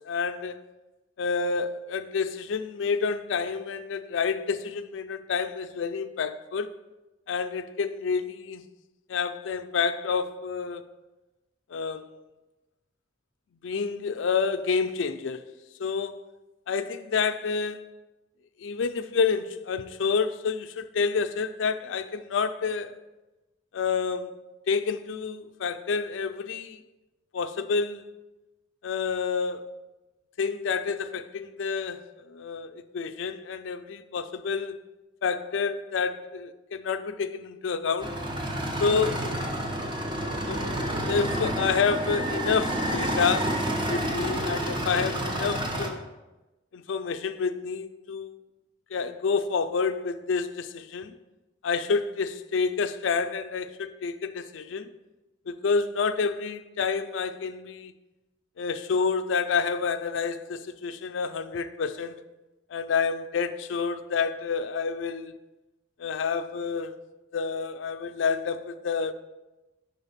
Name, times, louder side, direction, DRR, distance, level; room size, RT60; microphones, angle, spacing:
voice 1, 0.1-0.6 1.2-6.7 7.3-8.6 9.1-10.8 11.7-12.1 13.6-15.5 15.8-16.2 16.7-17.9 18.6-23.0 23.7-24.4 24.7-26.8 27.3-28.1 28.8-29.7 30.4-34.8 35.2-38.2 38.8-39.3 40.5-40.7 41.1-43.6 43.9-46.0 46.7-48.3 48.9-51.1 51.6-54.9 55.5-57.9 58.6-62.2 62.7-65.4 66.0-67.0 67.3-69.1, left 5 dB, 90° left, 0.4 m, -29 dB
sound 1, 38.0-45.9, right 1 dB, 25° right, 0.8 m, -29 dB
5.9 x 3.9 x 5.6 m
head